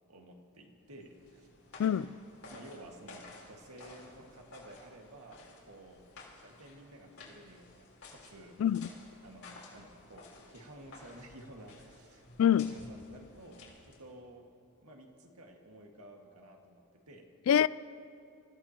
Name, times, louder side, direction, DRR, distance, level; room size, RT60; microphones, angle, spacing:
voice 1, 0.0-1.5 2.5-6.0 6.4-8.6 9.2-12.6 12.9-14.5 14.8-17.3, right 1 dB, 85° right, 1.9 m, -53 dB
sound 1, 0.9-14.2, left 3 dB, 90° left, 3.9 m, -54 dB
voice 2, 1.8-2.2 8.6-8.9 12.4-12.7 17.5-17.7, left 9 dB, 70° left, 0.3 m, -25 dB
28.0 x 15.5 x 3.0 m
head